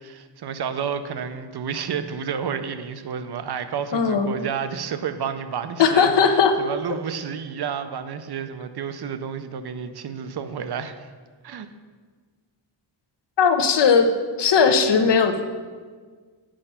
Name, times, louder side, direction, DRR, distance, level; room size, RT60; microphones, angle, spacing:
voice 1, 0.0-11.1 11.4-11.7, right 7 dB, 55° right, 10 dB, 0.6 m, -31 dB
voice 2, 3.9-4.3 5.8-6.6 13.4-14.1 14.4-15.4, left 6 dB, 60° left, 7 dB, 0.8 m, -18 dB
8.8 x 5.6 x 5.6 m, 1.5 s
wide cardioid pair, 150°, 48 cm